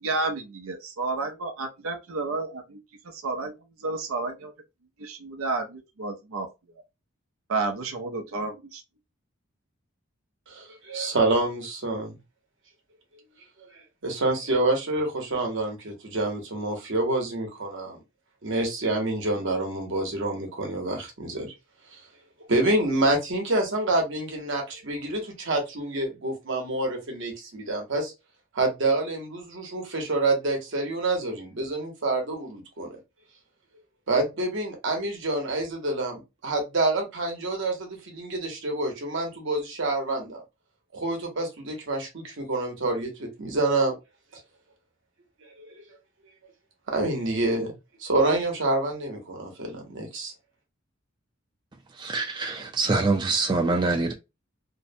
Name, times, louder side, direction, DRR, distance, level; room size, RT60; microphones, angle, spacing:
voice 1, 0.0-2.8 3.1-3.5 3.8-4.5 5.0-6.5 7.5-8.8, right 3 dB, 85° right, 0.5 m, -31 dB
voice 2, 10.5-12.1 14.0-18.0 18.4-21.5 21.9-22.0 22.5-28.1 28.5-33.0 34.1-40.4 40.9-44.0 45.6-45.8 46.9-50.3, right 2 dB, 65° right, 0.9 m, -27 dB
voice 3, 52.0-54.1, right 3 dB, 20° right, 0.4 m, -25 dB
2.6 x 2.1 x 2.6 m
head